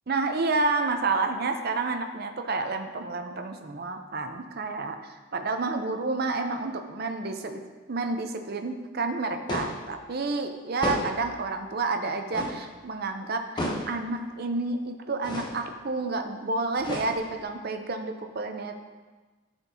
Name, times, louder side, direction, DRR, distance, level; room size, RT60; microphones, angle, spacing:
voice 1, 0.1-5.0 5.3-7.6 7.9-18.8, right 3 dB, 45° right, 6 dB, 0.6 m, -30 dB
sound 1, 9.5-9.9 10.8-11.3 12.3-12.7 13.6-14.0 15.2-15.6 16.8-17.4, left 1 dB, 20° left, 0.8 m, -32 dB
13.5 x 4.5 x 2.7 m, 1.3 s
head